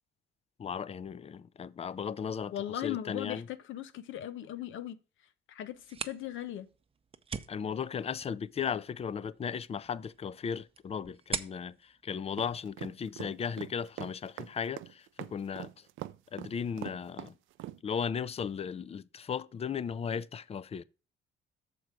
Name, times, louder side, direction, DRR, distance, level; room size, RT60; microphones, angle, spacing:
voice 1, 0.6-2.5 2.8-3.5 7.5-11.7 12.0-15.7 16.3-17.3 17.8-20.8, left 7 dB, 30° left, 0.4 m, -36 dB
voice 2, 2.5-5.0 5.5-6.7, left 12 dB, 75° left, 0.6 m, -38 dB
sound 1, 5.7-13.2, right 5 dB, 30° right, 0.6 m, -44 dB
sound 2, 12.4-17.8, right 15 dB, 80° right, 0.4 m, -42 dB
6.7 x 4.6 x 6.1 m
cardioid pair, 90°, 20 cm